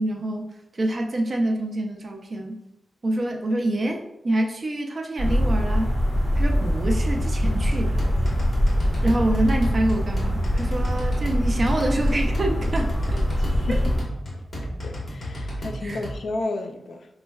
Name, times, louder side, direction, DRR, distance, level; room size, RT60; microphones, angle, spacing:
voice 1, 0.0-2.6 3.0-5.9 6.3-8.0 9.0-13.3 13.7-13.8 15.8-16.0, right 1 dB, 35° right, 0.4 m, -26 dB
sound 1, 5.2-14.0, equal, 25° left, 1.3 m, -23 dB
sound 2, 7.4-16.2, equal, 45° left, 1.2 m, -33 dB
voice 2, 13.4-13.9 14.6-17.1, left 2 dB, 60° left, 0.3 m, -32 dB
5.1 x 2.1 x 2.3 m
wide cardioid pair, 160°, 0 cm